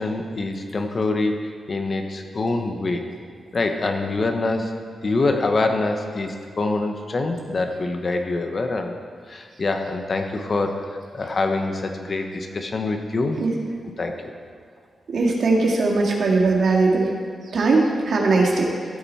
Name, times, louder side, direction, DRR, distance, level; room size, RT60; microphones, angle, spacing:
voice 1, 0.0-3.0 3.5-4.7 5.0-8.9 9.3-13.4 14.0-14.1, left 3 dB, 40° left, 4 dB, 1.1 m, -25 dB
voice 2, 15.1-17.1 17.5-18.7, right 3 dB, 70° right, -1 dB, 2.0 m, -19 dB
15.0 x 8.9 x 4.3 m, 2.1 s
wide cardioid pair, 105°, 0 cm